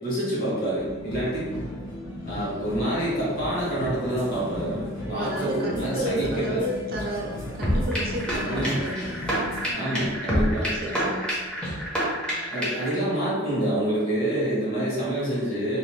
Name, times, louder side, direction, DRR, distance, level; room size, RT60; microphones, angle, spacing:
voice 1, 0.0-1.5 2.3-6.6 8.5-8.8 9.7-11.1 12.5-15.8, right 1 dB, 45° left, -7 dB, 1.1 m, -27 dB
sound 1, 0.7-9.7, left 1 dB, 65° left, 0.8 m, -36 dB
voice 2, 5.1-9.1 10.5-11.3, right 1 dB, 50° right, -2 dB, 0.6 m, -31 dB
sound 2, 7.6-12.9, equal, 5° left, 0.6 m, -27 dB
2.6 x 2.4 x 3.2 m, 1.4 s
head